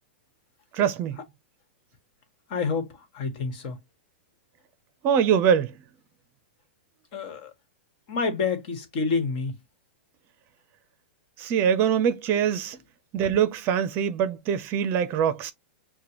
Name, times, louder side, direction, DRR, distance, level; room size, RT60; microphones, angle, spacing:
voice 1, 0.7-1.2 5.0-5.7 11.4-12.8 13.1-15.5, right 8 dB, 35° right, 0.6 m, -23 dB
voice 2, 2.5-3.8 7.1-7.5 8.1-9.6, left 4 dB, 50° left, 1.5 m, -28 dB
6.6 x 2.2 x 2.9 m
hypercardioid pair, 135°, 6 cm